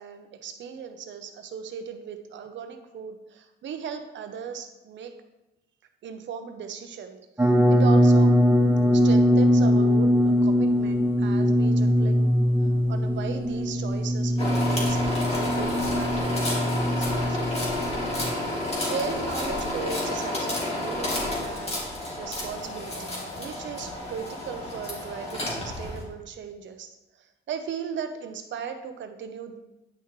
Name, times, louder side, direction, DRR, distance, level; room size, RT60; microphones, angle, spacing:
voice 1, 0.0-5.1 6.0-8.3 8.9-12.2 12.9-17.8 18.5-21.8 22.2-26.9 27.2-29.6, right 7 dB, 70° right, 7 dB, 0.9 m, -37 dB
sound 1, 7.4-18.3, equal, 10° right, 0.9 m, -21 dB
sound 2, 14.4-26.0, left 1 dB, 30° left, 2.5 m, -30 dB
9.9 x 5.8 x 3.2 m, 0.96 s
cardioid pair, 90°, 20 cm